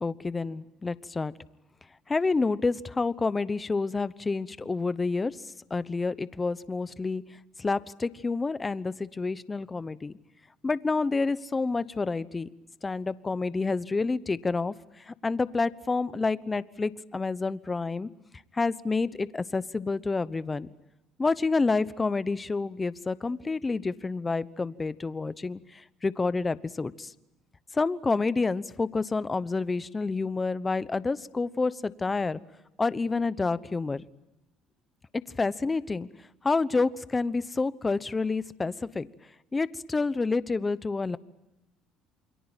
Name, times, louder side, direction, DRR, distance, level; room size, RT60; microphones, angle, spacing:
voice 1, 0.0-1.3 2.1-5.4 5.7-7.2 7.6-10.1 10.6-12.5 12.8-14.7 15.1-18.1 18.5-20.7 21.2-27.1 27.7-32.4 32.8-34.0 35.4-36.1 36.4-39.1 39.5-41.2, left 3 dB, 20° left, 16 dB, 1.0 m, -28 dB
29.0 x 22.5 x 9.0 m, 0.93 s
supercardioid pair, 95°, 0 cm